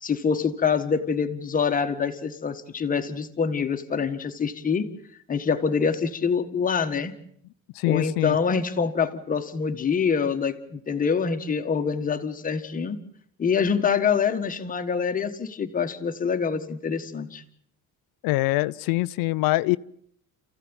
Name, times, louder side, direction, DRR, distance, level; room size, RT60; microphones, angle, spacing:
voice 1, 0.0-4.9 5.3-7.1 7.8-13.0 13.4-17.4, left 6 dB, 25° left, 7 dB, 1.7 m, -25 dB
voice 2, 7.7-8.4 18.2-19.8, left 19 dB, 90° left, 15 dB, 0.9 m, -24 dB
29.0 x 15.5 x 8.9 m, 0.68 s
cardioid pair, 170°, 34 cm